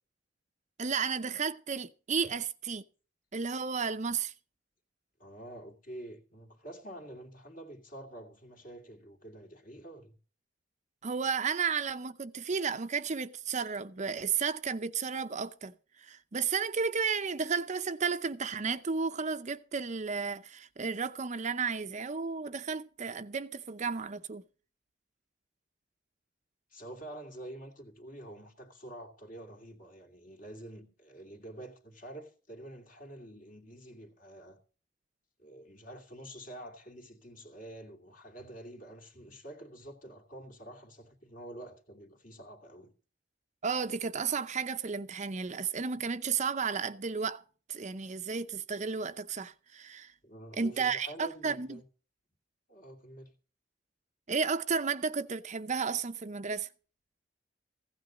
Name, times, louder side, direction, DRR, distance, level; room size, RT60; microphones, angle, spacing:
voice 1, 0.8-2.8 3.3-4.3 11.0-24.4 43.6-47.4 47.7-50.1 50.6-51.8 54.3-56.7, right 5 dB, 40° right, 0.6 m, -33 dB
voice 2, 5.2-10.2 26.7-34.6 35.4-42.9 50.2-51.8 52.7-53.3, right 1 dB, 45° left, 2.7 m, -48 dB
15.5 x 9.4 x 5.1 m
head